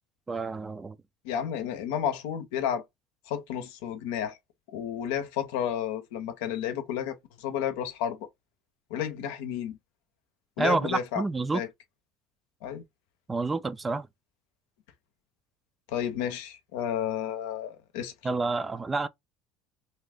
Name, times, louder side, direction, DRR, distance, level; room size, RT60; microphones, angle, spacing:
voice 1, 0.3-1.0 10.6-11.6 13.3-14.1 18.2-19.1, right 3 dB, 20° right, 0.4 m, -28 dB
voice 2, 1.2-2.8 3.3-4.4 4.7-8.3 8.9-9.8 10.6-11.2 11.5-11.7 12.6-12.8 15.9-18.1, left 9 dB, 85° left, 0.7 m, -31 dB
2.7 x 2.4 x 3.4 m
supercardioid pair, 95°, 0 cm